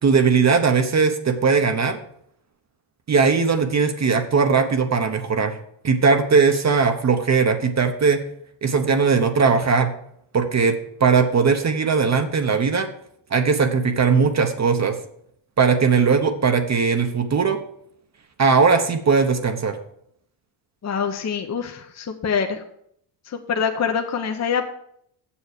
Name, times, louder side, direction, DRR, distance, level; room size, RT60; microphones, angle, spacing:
voice 1, 0.0-2.0 3.1-5.6 5.8-8.2 8.6-9.9 10.3-12.9 13.3-15.0 15.6-17.6 18.4-19.8, right 5 dB, 35° right, 7 dB, 0.9 m, -19 dB
voice 2, 20.8-22.6 23.3-24.7, left 6 dB, 35° left, 4 dB, 0.8 m, -25 dB
7.1 x 7.0 x 6.6 m, 0.69 s
cardioid pair, 115°, 50 cm